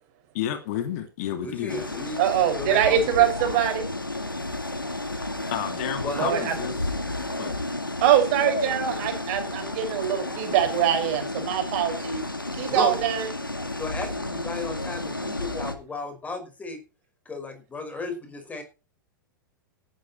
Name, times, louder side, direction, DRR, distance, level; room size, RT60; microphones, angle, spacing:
voice 1, 0.3-1.9 5.5-6.9 7.4-7.6, left 10 dB, 50° left, 2.7 m, -31 dB
voice 2, 1.4-2.2 2.6-3.2 6.0-6.6 12.7-12.9 13.8-16.8 17.3-18.6, left 3 dB, 15° left, 5.4 m, -34 dB
sound 1, 1.7-15.8, left 2 dB, 90° left, 2.4 m, -32 dB
voice 3, 2.2-3.9 6.1-6.6 8.0-12.2 12.5-13.3, right 10 dB, 45° right, 5.9 m, -23 dB
17.5 x 10.5 x 4.4 m
figure-of-eight pair, 100°, 11 cm